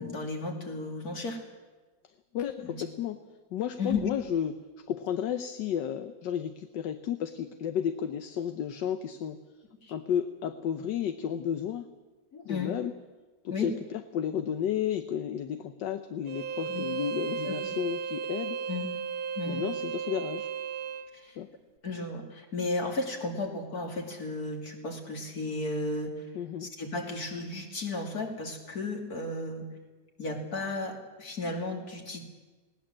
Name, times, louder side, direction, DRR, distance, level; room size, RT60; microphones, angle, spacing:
voice 1, 0.0-1.4 2.6-2.8 3.8-4.0 9.8-9.9 12.3-12.7 13.5-13.7 16.7-16.8 17.4-17.8 18.7-18.9 19.4-19.6 21.1-21.4 21.8-26.3 26.6-29.7 30.2-32.2, left 3 dB, 55° left, 2 dB, 3.2 m, -34 dB
voice 2, 2.3-3.2 3.5-4.6 4.9-9.4 9.9-11.9 12.4-12.9 13.4-13.7 14.1-18.6 19.5-20.5 21.4-21.5 26.3-26.7, left 9 dB, 75° left, 9 dB, 1.5 m, -32 dB
Bowed string instrument, 16.3-21.1, right 7 dB, 60° right, 1.3 m, -34 dB
20.0 x 18.5 x 7.6 m, 1.3 s
omnidirectional pair, 1.9 m